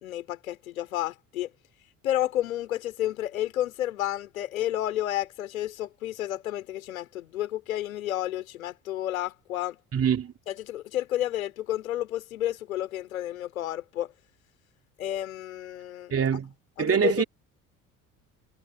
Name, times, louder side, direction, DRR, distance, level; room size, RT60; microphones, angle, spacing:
voice 1, 0.0-1.5 2.0-9.8 10.5-14.1 15.0-16.1 16.8-17.2, left 13 dB, 75° left, 3.3 m, -31 dB
voice 2, 9.9-10.3 16.1-16.5 16.8-17.2, right 7 dB, 35° right, 3.1 m, -24 dB
figure-of-eight pair, 55°, 42 cm